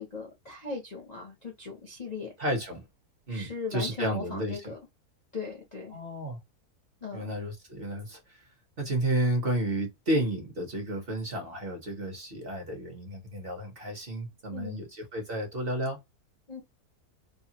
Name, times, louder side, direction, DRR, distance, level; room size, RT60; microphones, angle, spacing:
voice 1, 0.0-2.3 3.3-4.8 5.3-5.9 7.0-7.3 14.5-14.8 16.5-16.6, left 4 dB, 40° left, 0.6 m, -38 dB
voice 2, 2.4-2.8 3.3-4.7 5.9-6.4 7.1-8.4 8.8-16.0, right 1 dB, 45° right, 0.9 m, -32 dB
2.7 x 2.3 x 2.8 m
omnidirectional pair, 1.7 m